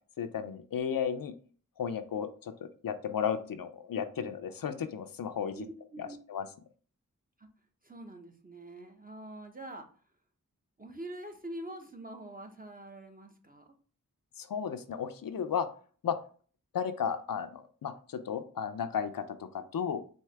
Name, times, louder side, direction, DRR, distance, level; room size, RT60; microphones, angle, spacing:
voice 1, 0.2-1.3 1.8-5.7 6.0-6.5 14.4-15.7 16.0-16.2 16.7-20.0, left 7 dB, 80° left, 10 dB, 0.5 m, -34 dB
voice 2, 5.6-6.2 7.4-7.5 7.8-9.9 10.8-13.8, right 1 dB, 25° right, 4 dB, 0.9 m, -45 dB
4.5 x 2.8 x 3.3 m, 0.42 s
wide cardioid pair, 45°, 34 cm